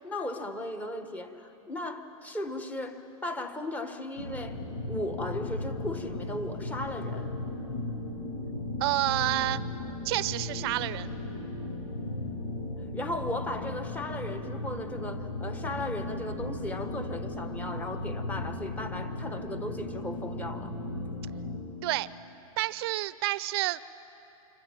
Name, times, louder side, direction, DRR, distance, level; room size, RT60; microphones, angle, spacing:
voice 1, 0.0-4.6 4.9-7.3 12.9-20.7, left 1 dB, 10° left, 8 dB, 1.3 m, -36 dB
sound 1, 4.2-21.6, left 2 dB, 80° left, 5.1 m, -36 dB
voice 2, 8.8-9.6 10.0-11.1 21.8-22.1 22.6-23.8, right 17 dB, 40° right, 17 dB, 0.7 m, -29 dB
26.0 x 24.5 x 9.1 m, 2.9 s
hypercardioid pair, 150°, 19 cm